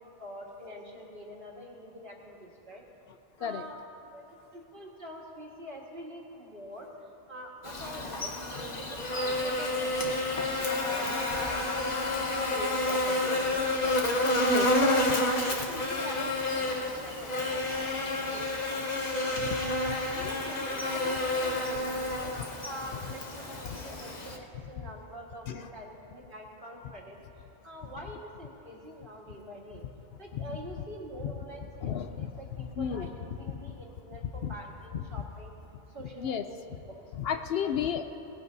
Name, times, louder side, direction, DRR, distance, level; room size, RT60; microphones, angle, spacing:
voice 1, 0.0-2.8 3.4-3.8 4.0-6.9 7.3-12.0 12.3-14.0 14.7-15.2 15.5-18.9 20.1-22.3 22.6-27.2 27.6-29.8 30.2-35.5 35.9-37.1 37.6-37.7, equal, 50° right, -2 dB, 1.8 m, -45 dB
Buzz, 7.6-24.4, left 2 dB, 40° left, 1.1 m, -30 dB
voice 2, 31.8-32.3 32.8-33.1 34.4-34.5 36.2-36.4 37.2-38.0, left 8 dB, 65° left, 7 dB, 0.7 m, -32 dB
19.0 x 16.5 x 2.7 m, 2.8 s
omnidirectional pair, 1.2 m